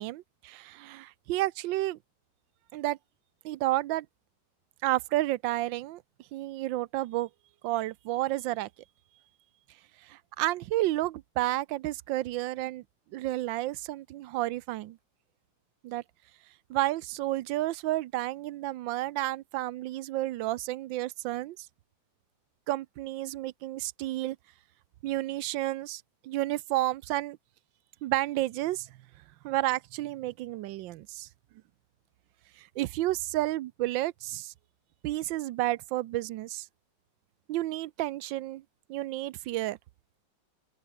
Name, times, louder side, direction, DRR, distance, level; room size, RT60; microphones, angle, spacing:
voice 1, 0.0-2.0 2.7-3.0 3.4-4.1 4.8-6.0 6.3-7.3 7.6-8.7 10.0-12.8 13.1-15.0 15.8-16.0 16.7-21.6 22.7-24.4 25.0-27.4 28.0-28.9 29.4-31.3 32.6-34.5 35.0-36.7 37.5-38.6 38.9-39.8, right 16 dB, 85° right, 1.4 m, -31 dB
open air
omnidirectional pair, 2.0 m